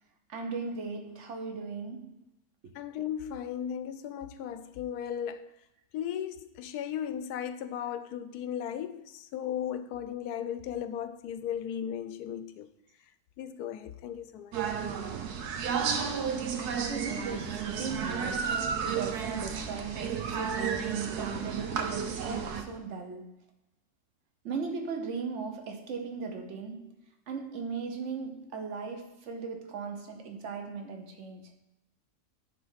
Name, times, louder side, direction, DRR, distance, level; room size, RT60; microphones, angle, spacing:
voice 1, 0.3-2.2 16.6-23.3 24.4-27.0 27.3-31.5, right 5 dB, 55° right, 1.3 m, -38 dB
voice 2, 2.7-5.5 5.9-12.7 13.4-14.5, left 9 dB, 80° left, 1.1 m, -36 dB
sound 1, 14.5-22.6, right 6 dB, 90° right, 1.4 m, -32 dB
10.0 x 3.8 x 5.6 m
omnidirectional pair, 1.6 m